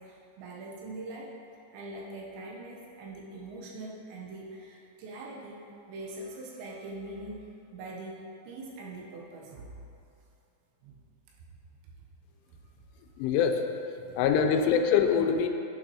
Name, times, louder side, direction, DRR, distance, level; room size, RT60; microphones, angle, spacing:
voice 1, 0.0-1.3 1.7-9.8 10.8-10.9 12.0-12.1 14.0-14.5, right 2 dB, 80° right, -3 dB, 2.9 m, -43 dB
voice 2, 13.2-13.6 14.1-15.5, left 7 dB, 90° left, 5 dB, 3.0 m, -24 dB
11.5 x 6.0 x 2.8 m, 2.7 s
omnidirectional pair, 5.4 m